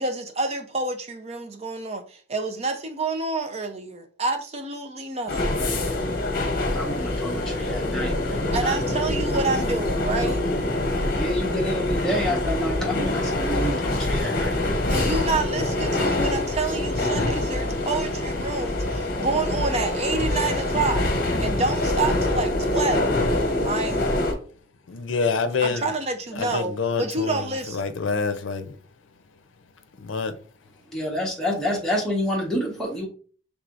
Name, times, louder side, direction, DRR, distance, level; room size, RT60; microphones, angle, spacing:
voice 1, 0.0-5.6 8.5-10.4 14.9-21.1 21.4-23.2 23.6-24.1 25.6-26.7 27.0-27.9, right 3 dB, 35° right, 0.6 m, -28 dB
sound 1, 5.3-24.3, left 1 dB, 50° left, 0.9 m, -25 dB
voice 2, 6.7-8.8 11.1-14.9 30.9-33.1, equal, 5° left, 1.2 m, -28 dB
voice 3, 24.9-25.9 26.3-28.8 29.9-30.4, left 5 dB, 85° left, 0.5 m, -27 dB
4.7 x 3.5 x 2.5 m
head